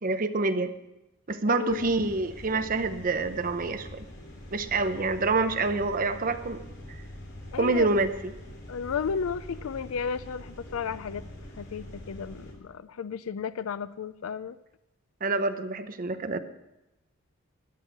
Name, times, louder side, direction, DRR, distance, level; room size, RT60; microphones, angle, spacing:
voice 1, 0.0-0.7 1.3-4.0 4.5-6.6 6.9-7.0 7.6-8.1 15.2-16.4, right 3 dB, 40° right, 10 dB, 0.8 m, -27 dB
voice 2, 1.5-1.9 7.5-8.0 8.7-11.2 11.6-14.6, left 6 dB, 85° left, 15 dB, 0.4 m, -33 dB
sound 1, 1.7-12.5, left 1 dB, 55° left, 3.2 m, -44 dB
13.0 x 10.0 x 6.0 m, 0.96 s
head